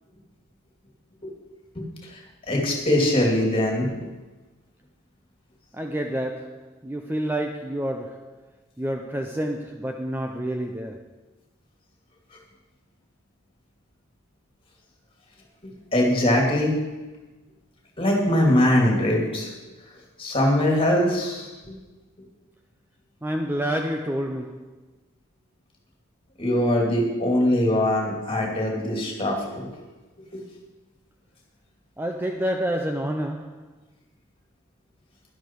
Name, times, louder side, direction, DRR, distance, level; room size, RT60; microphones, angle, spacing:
voice 1, 2.5-4.0 15.9-16.8 18.0-19.5 20.2-21.7 26.4-29.7 30.3-30.4, left 1 dB, 25° left, 2.6 m, -22 dB
voice 2, 5.7-8.4 8.8-11.1 23.2-24.7 32.0-33.7, right 1 dB, 10° right, 0.5 m, -29 dB
11.5 x 11.5 x 4.6 m
head